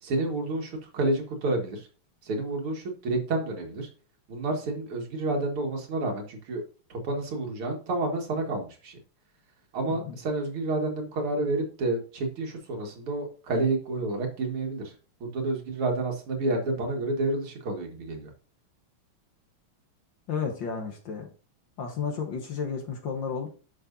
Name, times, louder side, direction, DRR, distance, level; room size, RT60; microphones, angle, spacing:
voice 1, 0.0-1.9 2.2-3.9 4.3-6.6 6.9-9.0 9.7-14.9 15.2-18.3, right 2 dB, 85° right, 2 dB, 2.7 m, -29 dB
voice 2, 20.3-21.3 21.8-23.5, left 6 dB, 60° left, 3 dB, 1.9 m, -32 dB
9.8 x 6.4 x 2.6 m, 0.37 s
omnidirectional pair, 2.3 m